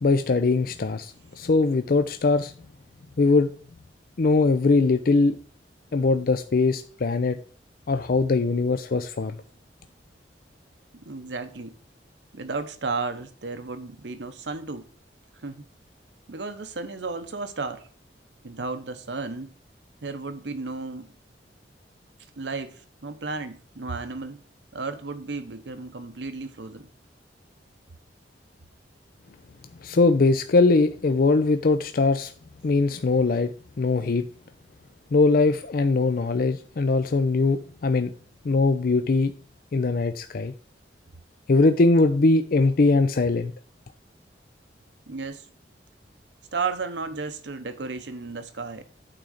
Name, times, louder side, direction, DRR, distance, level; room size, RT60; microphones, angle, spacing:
voice 1, 0.0-2.5 3.2-3.5 4.2-5.4 5.9-7.4 7.9-9.4 29.8-32.3 32.6-33.5 33.8-34.2 35.1-38.1 38.4-39.3 39.7-40.5 41.5-43.5, left 3 dB, 55° left, 0.5 m, -21 dB
voice 2, 11.0-11.8 12.3-14.9 15.4-15.6 16.3-17.9 18.4-19.5 20.0-21.1 22.4-24.4 24.7-26.9 45.1-45.5 46.5-48.8, right 4 dB, 75° right, 0.9 m, -33 dB
8.8 x 3.8 x 6.4 m
head